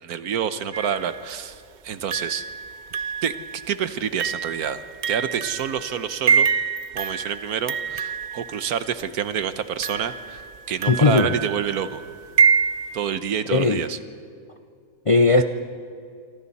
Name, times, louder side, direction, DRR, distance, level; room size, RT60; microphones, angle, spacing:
voice 1, 0.0-2.4 3.2-6.5 6.9-12.0 12.9-14.0, right 8 dB, 80° right, 11 dB, 1.4 m, -28 dB
sound 1, 0.7-1.3 2.1-9.0 9.8-13.1, right 6 dB, 65° right, 0.4 m, -26 dB
voice 2, 10.9-11.3 13.5-13.8 15.1-15.4, left 3 dB, 45° left, 7 dB, 0.4 m, -17 dB
28.0 x 25.0 x 4.2 m, 2.4 s
omnidirectional pair, 1.6 m